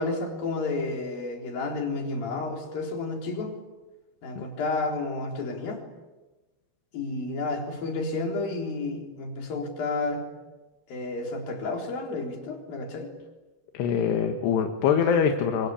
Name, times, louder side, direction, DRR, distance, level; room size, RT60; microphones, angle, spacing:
voice 1, 0.0-3.6 4.2-5.8 6.9-10.2 10.9-13.1, left 3 dB, 55° left, 2 dB, 5.4 m, -31 dB
voice 2, 13.7-15.7, left 7 dB, 75° left, 5 dB, 3.5 m, -24 dB
27.0 x 24.5 x 8.5 m, 1.2 s
omnidirectional pair, 5.1 m